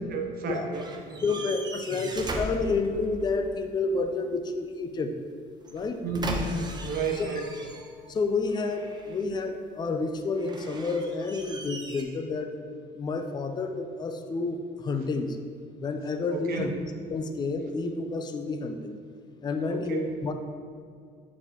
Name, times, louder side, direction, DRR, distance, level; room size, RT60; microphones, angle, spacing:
voice 1, 0.1-1.3 1.9-2.1 6.0-7.7 16.3-16.7 19.7-20.1, right 4 dB, 60° right, 3 dB, 0.8 m, -32 dB
sound 1, 0.7-3.4 5.6-8.1 8.5-9.4 10.3-12.0, right 1 dB, 25° right, 0.7 m, -38 dB
voice 2, 1.2-5.1 5.7-6.0 7.2-7.3 8.1-12.6 13.0-15.4 15.8-19.0 19.4-20.3, left 3 dB, 25° left, 6 dB, 0.4 m, -30 dB
8.8 x 4.2 x 2.9 m, 2.2 s
cardioid pair, 110°, 17 cm